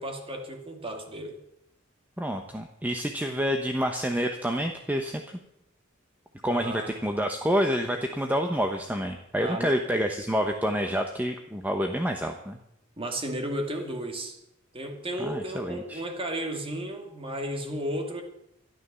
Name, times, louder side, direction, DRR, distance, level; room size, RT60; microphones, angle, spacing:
voice 1, 0.0-1.4 6.5-6.9 9.4-9.7 13.0-14.4 14.7-18.2, right 1 dB, 25° right, 3 dB, 2.4 m, -33 dB
voice 2, 2.2-5.2 6.4-12.6 15.2-16.0, equal, 10° right, 4 dB, 0.9 m, -28 dB
13.0 x 11.5 x 6.9 m, 0.80 s
head